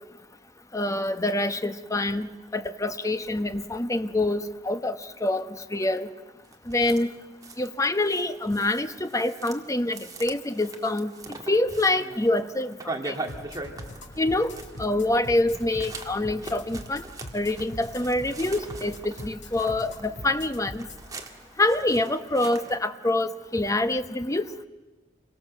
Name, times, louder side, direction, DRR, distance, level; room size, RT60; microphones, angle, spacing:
voice 1, 0.7-6.1 6.7-7.1 7.6-11.1 11.5-12.7 13.0-13.1 14.2-14.5 14.8-17.0 17.3-20.9 21.6-24.5, left 2 dB, 20° left, 10 dB, 1.0 m, -26 dB
sound 1, 6.5-7.0 7.4-15.1 15.5-22.8, right 2 dB, 20° right, 2.1 m, -41 dB
sound 2, 13.3-21.0, left 1 dB, 70° left, 2.8 m, -42 dB
28.0 x 23.5 x 7.6 m, 1.2 s
head